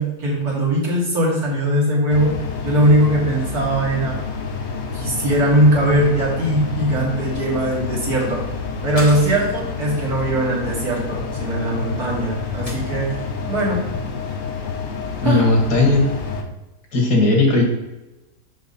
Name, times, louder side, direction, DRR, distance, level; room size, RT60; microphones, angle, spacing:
voice 1, 0.0-2.3 2.6-4.2 4.9-8.4 8.8-13.1 13.5-13.9 15.2-15.5, right 1 dB, 60° right, -3 dB, 2.5 m, -20 dB
sound 1, 2.1-16.4, left 5 dB, 50° left, 1.0 m, -28 dB
sound 2, 9.0-9.7 10.2-10.4 10.7-11.7 12.7-13.4, left 2 dB, 25° left, 1.0 m, -37 dB
voice 2, 15.2-16.1 16.9-17.6, left 2 dB, 75° left, 0 dB, 2.4 m, -16 dB
6.3 x 6.3 x 4.1 m, 1.0 s
omnidirectional pair, 1.8 m